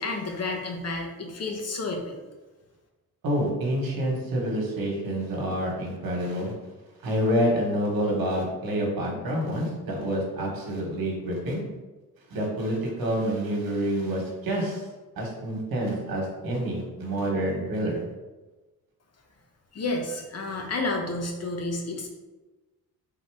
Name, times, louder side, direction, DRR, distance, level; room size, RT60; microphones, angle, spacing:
voice 1, 0.0-2.2 19.7-22.1, left 2 dB, 45° left, 2 dB, 0.9 m, -30 dB
voice 2, 3.2-6.5 7.0-11.6 12.3-14.8 15.2-18.0, equal, 75° right, 0 dB, 1.3 m, -27 dB
3.7 x 2.9 x 4.6 m, 1.2 s
cardioid pair, 95°, 35 cm